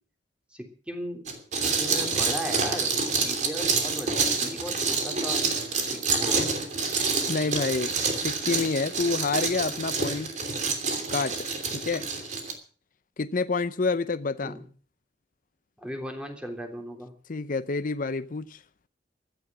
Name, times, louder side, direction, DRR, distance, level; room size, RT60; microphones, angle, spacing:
voice 1, 0.5-1.3 1.6-5.4 6.1-6.6 14.4-14.7 15.8-17.1, equal, 5° right, 3.4 m, -37 dB
sound 1, 1.3-12.5, right 4 dB, 45° right, 3.0 m, -27 dB
voice 2, 7.3-7.9 8.2-10.3 11.1-11.3 11.7-12.1 13.2-14.5 17.3-18.6, left 4 dB, 50° left, 0.7 m, -28 dB
15.5 x 12.0 x 6.1 m
head